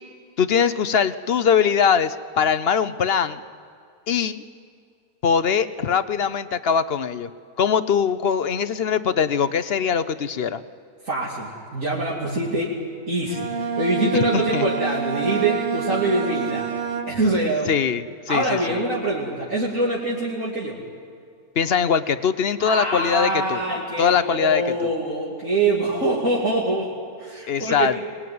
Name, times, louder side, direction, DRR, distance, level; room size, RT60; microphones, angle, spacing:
voice 1, 0.4-3.4 4.1-4.4 5.2-7.3 7.6-10.6 14.3-14.7 17.7-18.8 21.6-23.6 24.0-24.6 27.5-28.0, left 7 dB, 50° left, 13 dB, 0.8 m, -21 dB
voice 2, 11.0-12.8 13.1-16.8 17.1-17.7 18.3-20.8 22.6-26.9 27.2-27.9, right 2 dB, 60° right, -5 dB, 3.2 m, -24 dB
Bowed string instrument, 13.2-17.5, right 6 dB, 35° right, 1.8 m, -27 dB
23.5 x 20.0 x 9.4 m, 2.4 s
omnidirectional pair, 1.5 m